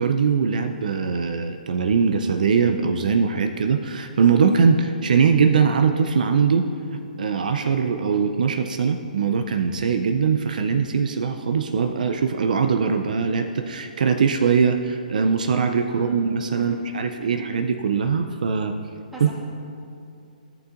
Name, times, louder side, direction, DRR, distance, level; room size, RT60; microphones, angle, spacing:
voice 1, 0.0-6.7 7.2-18.7 19.2-19.3, right 6 dB, 65° right, 6 dB, 0.5 m, -21 dB
voice 2, 15.9-16.3 16.5-16.9 17.2-17.5 19.1-19.3, right 1 dB, 5° right, -6 dB, 1.7 m, -40 dB
14.0 x 6.8 x 2.5 m, 2.6 s
hypercardioid pair, 135°, 5 cm